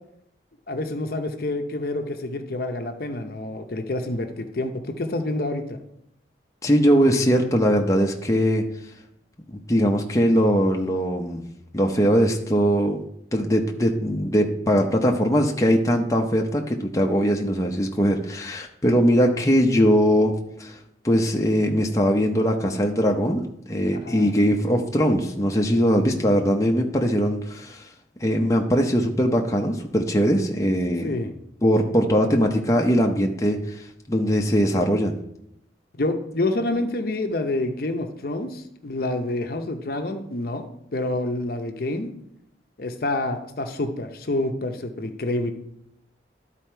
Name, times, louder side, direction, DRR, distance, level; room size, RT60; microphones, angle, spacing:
voice 1, 0.7-5.8 23.9-24.3 31.0-31.3 36.0-42.1 42.8-45.5, left 2 dB, 55° left, 6 dB, 0.7 m, -28 dB
voice 2, 6.6-8.6 9.5-11.4 11.7-13.0 13.3-20.3 20.6-20.8 21.0-27.9 28.2-31.1 31.6-35.1, equal, 15° left, 1 dB, 0.7 m, -21 dB
12.0 x 4.2 x 4.5 m, 0.76 s
head